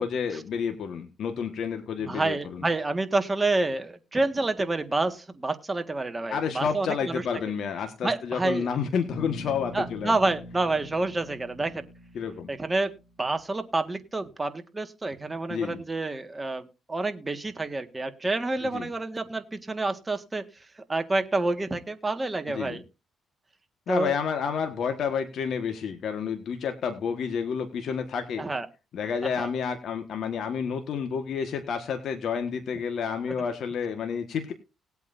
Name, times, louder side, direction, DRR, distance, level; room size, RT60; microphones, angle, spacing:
voice 1, 0.0-2.6 6.3-10.1 12.1-12.5 15.5-15.8 18.6-18.9 22.5-22.8 23.9-28.4 28.9-34.5, left 6 dB, 65° left, 6 dB, 1.5 m, -30 dB
voice 2, 2.0-7.2 8.0-8.7 9.7-11.8 12.5-12.9 13.2-20.4 20.9-22.8 23.9-24.1 28.4-28.7 29.4-29.5, right 2 dB, 20° right, 7 dB, 1.7 m, -28 dB
Bass guitar, 9.1-13.1, left 2 dB, 45° left, 2.6 m, -42 dB
20.0 x 8.3 x 2.6 m, 0.30 s
cardioid pair, 90°, 0 cm